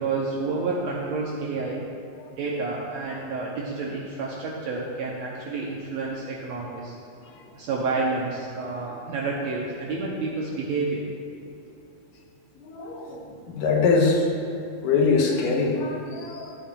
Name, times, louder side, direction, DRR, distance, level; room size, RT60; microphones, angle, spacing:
voice 1, 0.0-1.9 2.3-7.0 7.5-11.0, right 3 dB, 75° right, -3 dB, 1.7 m, -29 dB
voice 2, 12.6-13.2 13.5-14.3 14.8-16.6, left 4 dB, 80° left, 0 dB, 2.5 m, -23 dB
13.5 x 7.6 x 2.3 m, 2.5 s
omnidirectional pair, 3.9 m